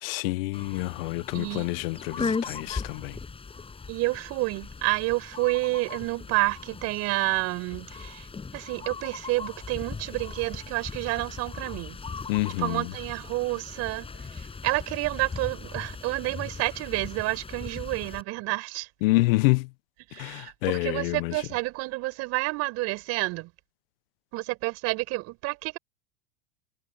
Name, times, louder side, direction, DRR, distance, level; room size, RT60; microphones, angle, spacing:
voice 1, 0.0-3.2 12.3-12.9 19.0-19.7 20.1-21.4, left 22 dB, 60° left, 1.0 m, -27 dB
sound 1, 0.5-18.2, left 4 dB, 15° left, 7.5 m, -38 dB
voice 2, 1.3-1.7 3.9-8.3 8.5-12.0 12.6-18.9 20.1-23.5 24.3-25.8, right 22 dB, 50° right, 5.1 m, -29 dB
hypercardioid pair, 95°, 32 cm